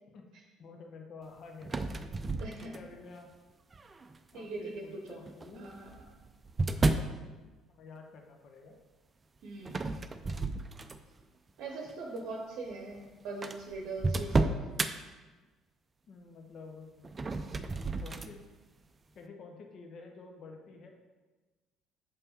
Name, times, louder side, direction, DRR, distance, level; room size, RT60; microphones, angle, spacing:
voice 1, 0.6-1.9 2.6-3.3 4.3-5.7 7.7-8.8 16.1-17.1 18.0-18.4 19.1-20.9, left 4 dB, 50° left, 3 dB, 0.9 m, -50 dB
sound 1, 1.6-3.1 3.7-4.2 5.3-7.2 9.7-11.2 11.7-11.9 12.7-12.8 13.0-13.1 13.4-14.9 17.0-18.3, right 2 dB, 25° right, 0.4 m, -32 dB
voice 2, 2.4-2.7 4.3-5.2 5.5-5.9 9.4-9.8 11.6-14.6, right 3 dB, 55° right, 1 dB, 0.8 m, -41 dB
6.9 x 5.4 x 4.2 m, 1.3 s
figure-of-eight pair, 50°, 0 cm